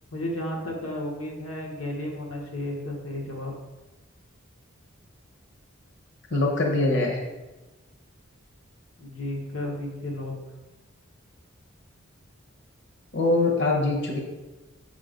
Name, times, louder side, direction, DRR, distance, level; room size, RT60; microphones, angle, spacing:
voice 1, 0.1-3.5 9.0-10.3, left 1 dB, 90° left, -1 dB, 1.4 m, -33 dB
voice 2, 6.3-7.2 13.1-14.2, left 2 dB, 60° left, 0 dB, 1.0 m, -23 dB
5.9 x 3.7 x 5.1 m, 1.1 s
head